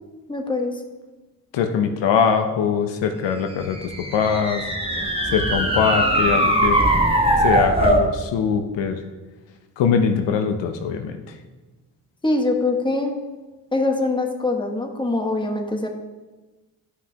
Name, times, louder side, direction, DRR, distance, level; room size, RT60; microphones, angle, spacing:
voice 1, 0.3-0.8 12.2-13.1 13.7-15.9, left 2 dB, 10° left, 2 dB, 1.3 m, -23 dB
voice 2, 1.5-6.8 7.4-9.0 9.8-11.4, left 6 dB, 80° left, 6 dB, 0.8 m, -22 dB
sound 1, 3.7-8.1, right 1 dB, 15° right, 1.3 m, -20 dB
11.0 x 5.8 x 2.9 m, 1.2 s
supercardioid pair, 50°, 43 cm